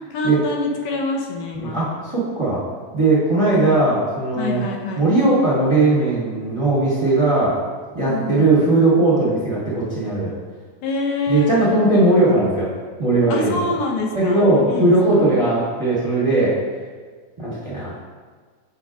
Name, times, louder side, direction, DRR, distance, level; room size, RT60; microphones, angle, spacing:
voice 1, 0.1-1.8 4.4-5.0 8.0-8.8 10.8-11.5 13.3-14.4 14.7-14.9, left 2 dB, 80° left, 0 dB, 2.4 m, -25 dB
voice 2, 1.5-2.6 2.9-4.7 4.9-7.5 7.9-10.3 11.3-12.7 13.0-13.6 14.1-16.6 17.4-17.9, right 2 dB, 15° right, -9 dB, 1.0 m, -18 dB
8.0 x 6.9 x 2.4 m, 1.5 s
omnidirectional pair, 3.8 m